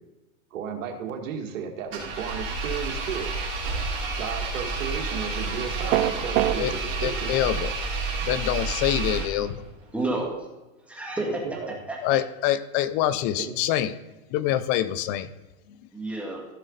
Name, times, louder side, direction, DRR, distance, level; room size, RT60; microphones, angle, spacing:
voice 1, 0.5-3.3 4.2-7.3 11.3-11.7 13.4-13.5, right 7 dB, 70° right, 4 dB, 1.9 m, -34 dB
Engine, 1.9-9.6, right 3 dB, 30° right, 4.0 m, -30 dB
sound 1, 5.9-6.6, right 15 dB, 50° right, 0.6 m, -21 dB
voice 2, 7.0-7.7 8.2-9.6 12.0-13.9 14.3-15.3, left 12 dB, 30° left, 15 dB, 0.4 m, -25 dB
voice 3, 9.9-10.5 10.8-12.2 15.9-16.5, right 2 dB, 5° right, -1 dB, 2.0 m, -31 dB
15.0 x 6.1 x 3.9 m, 1.1 s
supercardioid pair, 140°, 40 cm